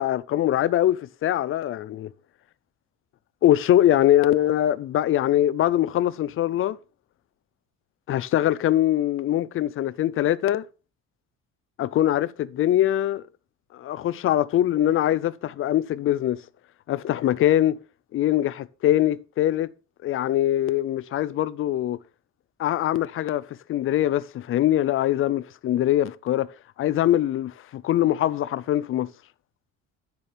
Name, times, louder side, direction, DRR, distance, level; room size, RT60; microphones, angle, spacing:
voice 1, 0.0-2.1 3.4-6.8 8.1-10.7 11.8-13.3 13.7-16.4 16.9-17.8 18.1-19.7 20.0-22.0 22.6-26.5 26.8-29.1, left 12 dB, 45° left, 0.5 m, -22 dB
10.5 x 6.9 x 5.0 m
cardioid pair, 175°, 31 cm